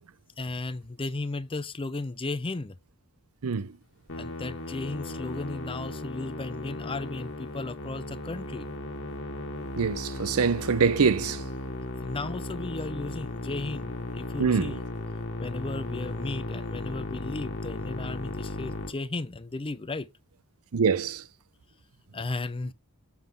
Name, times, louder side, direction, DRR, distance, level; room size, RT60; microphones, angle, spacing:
voice 1, 0.4-2.8 4.2-8.7 12.0-14.8 15.4-20.1 22.1-22.7, left 2 dB, 25° left, 0.5 m, -35 dB
voice 2, 3.4-3.8 9.8-11.5 14.4-14.8 20.7-21.3, right 5 dB, 75° right, 0.6 m, -25 dB
Musical instrument, 4.1-18.9, left 1 dB, 60° left, 1.6 m, -36 dB
7.4 x 3.7 x 4.7 m
head